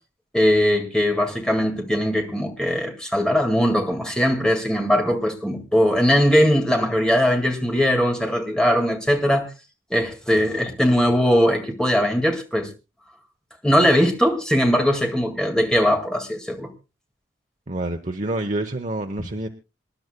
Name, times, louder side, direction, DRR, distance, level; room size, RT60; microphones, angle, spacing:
voice 1, 0.3-9.5 9.9-12.7 13.6-16.7, equal, 5° left, 1.9 m, -20 dB
voice 2, 17.7-19.5, right 2 dB, 40° right, 0.8 m, -27 dB
26.5 x 11.0 x 2.2 m
head